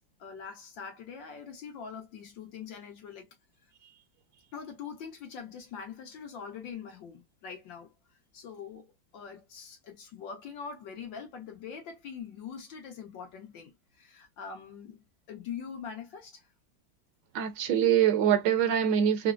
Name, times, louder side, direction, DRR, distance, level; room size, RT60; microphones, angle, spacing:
voice 1, 0.0-3.3 4.5-7.9 8.3-16.5, left 6 dB, 75° left, 1.7 m, -43 dB
voice 2, 17.3-19.3, right 9 dB, 70° right, 1.3 m, -24 dB
4.3 x 2.0 x 2.5 m
omnidirectional pair, 2.1 m